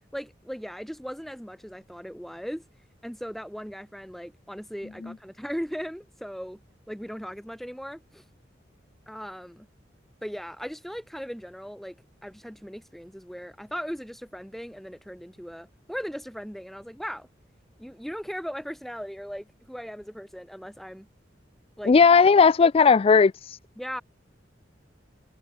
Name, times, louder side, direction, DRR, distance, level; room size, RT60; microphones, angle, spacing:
voice 1, 0.1-2.6 3.0-6.6 6.9-8.2 9.1-9.7 10.2-17.3 17.8-21.1 21.8-21.9 23.8-24.0, equal, ahead, 4.9 m, -38 dB
voice 2, 21.9-23.6, left 5 dB, 30° left, 0.3 m, -17 dB
head